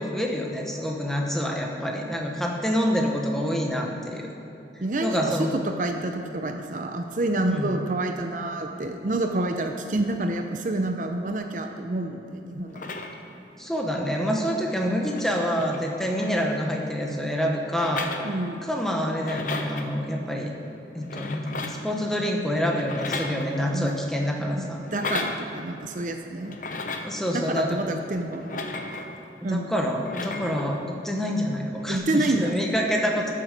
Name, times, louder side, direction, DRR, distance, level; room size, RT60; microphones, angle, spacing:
voice 1, 0.0-4.3 5.0-5.5 7.5-7.7 13.6-18.1 18.6-20.5 20.9-24.8 27.0-27.8 29.4-33.3, equal, ahead, 0 dB, 1.1 m, -27 dB
voice 2, 4.8-12.8 18.2-18.7 23.7-23.9 24.6-26.5 27.3-28.8 29.4-29.7 31.9-32.5, right 2 dB, 45° right, 5 dB, 0.6 m, -28 dB
sound 1, 12.7-13.4 14.5-14.6 14.8-16.8 17.7-18.8 19.1-19.9 20.9-21.9 22.7-23.8 24.8-25.4 26.5-27.2 28.3-29.2 29.9-30.8 31.8-32.0, left 3 dB, 45° left, 0.9 m, -35 dB
12.5 x 7.5 x 6.6 m, 3.0 s
head